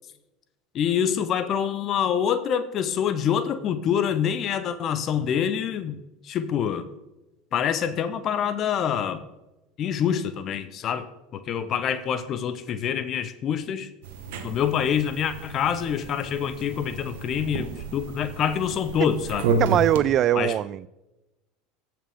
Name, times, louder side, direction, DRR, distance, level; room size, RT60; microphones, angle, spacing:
voice 1, 0.7-6.0 6.2-6.8 7.5-9.2 9.8-11.1 11.3-13.9 14.4-19.4 20.3-20.5, left 8 dB, 45° left, 0.7 m, -26 dB
sound 1, 14.0-20.0, right 3 dB, 70° right, 1.2 m, -31 dB
voice 2, 19.6-20.9, right 12 dB, 45° right, 0.3 m, -21 dB
15.0 x 5.9 x 3.5 m
hypercardioid pair, 90°, 0 cm